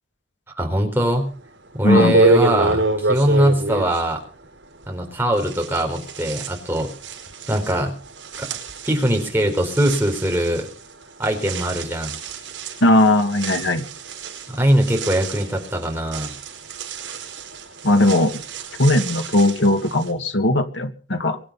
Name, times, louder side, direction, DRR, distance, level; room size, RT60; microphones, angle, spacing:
voice 1, 0.6-1.3 1.7-4.2 4.9-6.9 7.5-7.9 8.4-8.5 8.8-10.7 11.2-12.1 14.5-16.3, right 1 dB, 10° right, 4.3 m, -21 dB
sound 1, 1.4-1.5 1.9-5.0 5.4-20.1, right 2 dB, 75° right, 5.0 m, -27 dB
voice 2, 1.8-2.2 12.8-13.8 17.8-18.4 18.8-21.4, left 1 dB, 75° left, 2.1 m, -18 dB
24.0 x 9.0 x 5.7 m
head